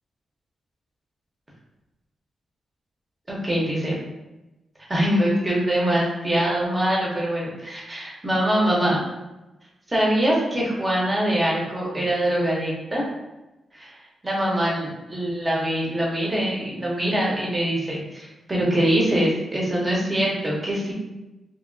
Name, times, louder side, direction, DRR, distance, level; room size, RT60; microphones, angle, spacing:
voice 1, 3.3-4.0 4.9-9.0 9.9-13.0 13.7-13.9 14.2-20.9, right 1 dB, 15° right, -4 dB, 0.7 m, -23 dB
2.8 x 2.7 x 2.6 m, 1.0 s
wide cardioid pair, 160°, 0 cm